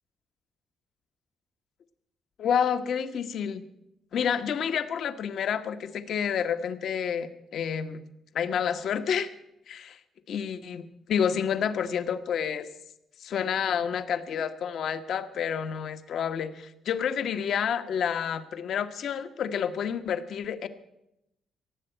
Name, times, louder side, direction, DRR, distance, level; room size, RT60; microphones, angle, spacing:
voice 1, 2.4-3.6 4.1-8.0 8.3-9.3 9.7-9.9 10.3-12.7 13.2-20.7, left 8 dB, 65° left, 9 dB, 1.1 m, -29 dB
18.0 x 7.6 x 9.0 m, 0.84 s
cardioid pair, 90°, 0 cm